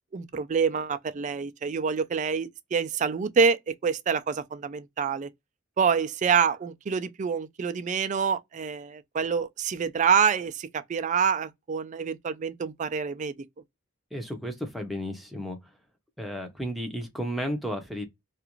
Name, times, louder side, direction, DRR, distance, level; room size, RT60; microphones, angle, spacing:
voice 1, 0.1-5.3 5.8-13.3, right 6 dB, 35° right, 0.3 m, -26 dB
voice 2, 14.1-15.6 16.2-18.1, equal, ahead, 0.6 m, -33 dB
2.5 x 2.3 x 2.9 m
head